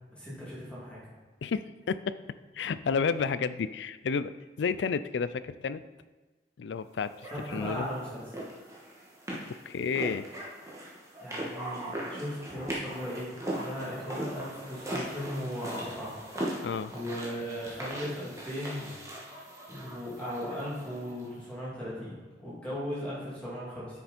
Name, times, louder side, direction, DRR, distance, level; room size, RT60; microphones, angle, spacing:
voice 1, 0.1-1.0 7.3-8.2 11.2-16.2 16.9-18.9 19.7-24.0, equal, 5° left, -8 dB, 2.8 m, -37 dB
voice 2, 1.4-2.1 2.5-4.3 4.6-5.8 6.6-7.1 7.5-7.9 9.3-10.3 16.6-16.9, left 5 dB, 80° left, 14 dB, 0.4 m, -31 dB
sound 1, 7.2-21.3, right 1 dB, 15° right, 1.7 m, -39 dB
9.6 x 6.9 x 4.3 m, 1.3 s
head